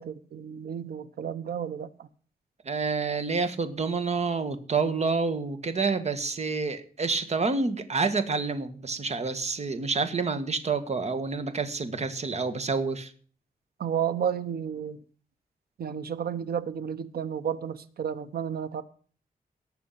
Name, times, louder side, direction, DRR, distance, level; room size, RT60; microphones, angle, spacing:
voice 1, 0.0-2.1 13.8-15.0 15.8-18.8, right 8 dB, 90° right, 1.1 m, -32 dB
voice 2, 2.6-13.1, right 4 dB, 45° right, 1.7 m, -28 dB
18.5 x 6.8 x 5.8 m
wide cardioid pair, 135°, 15 cm